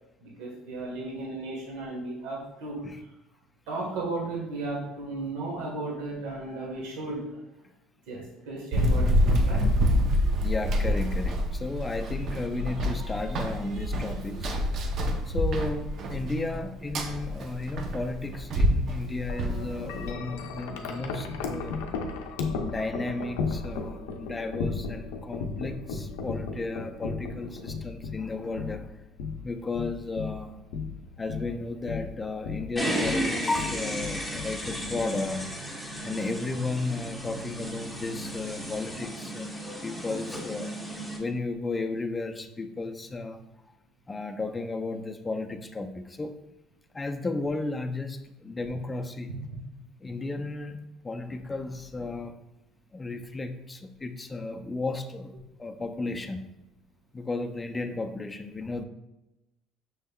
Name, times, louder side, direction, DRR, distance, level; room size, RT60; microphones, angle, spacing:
voice 1, 0.2-2.8 3.7-7.4 8.1-9.7 49.3-49.4, right 2 dB, 80° right, -3 dB, 1.2 m, -35 dB
Run, 8.7-20.1, equal, 50° right, 0.6 m, -27 dB
voice 2, 10.4-14.6 15.3-21.9 22.6-29.0 29.4-30.6 31.2-35.5 36.0-43.5 44.1-46.4 46.9-49.4 50.0-52.4 52.9-55.3 55.6-56.4 57.1-58.8, left 3 dB, 20° left, 7 dB, 0.4 m, -34 dB
Wind chime, 19.3-35.5, left 4 dB, 90° left, 0.5 m, -36 dB
sound 1, 32.8-41.2, equal, 5° right, 1.0 m, -34 dB
6.2 x 3.4 x 2.3 m, 0.96 s
supercardioid pair, 100°, 0 cm